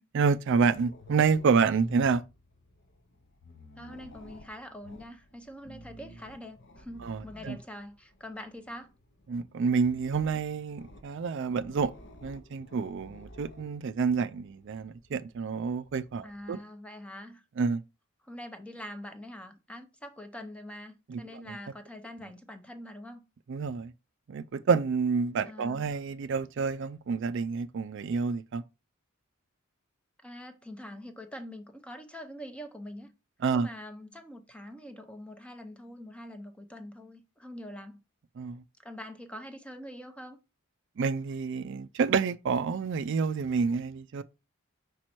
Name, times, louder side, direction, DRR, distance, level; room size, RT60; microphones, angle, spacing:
voice 1, 0.1-2.2 7.0-7.6 9.3-11.9 12.2-16.6 17.6-17.8 21.1-21.6 23.5-23.9 24.3-28.6 33.4-33.7 38.4-38.6 41.0-44.2, right 5 dB, 60° right, 0.4 m, -28 dB
sound 1, 0.5-16.5, left 1 dB, 55° left, 0.9 m, -51 dB
voice 2, 3.8-8.9 16.2-17.4 18.3-23.2 25.5-25.9 30.2-33.1 33.5-38.0 38.8-40.4, left 1 dB, 5° left, 0.7 m, -44 dB
5.2 x 4.5 x 4.4 m
head